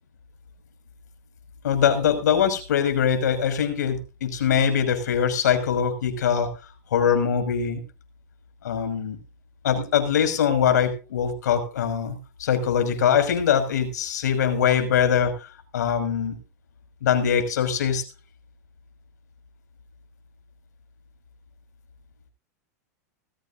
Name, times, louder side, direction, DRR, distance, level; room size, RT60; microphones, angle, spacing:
voice 1, 1.6-6.5 6.9-7.8 8.6-9.2 9.6-16.4 17.0-18.0, left 8 dB, 80° left, 8 dB, 6.1 m, -22 dB
21.0 x 14.5 x 2.6 m, 0.33 s
hypercardioid pair, 115°, 9 cm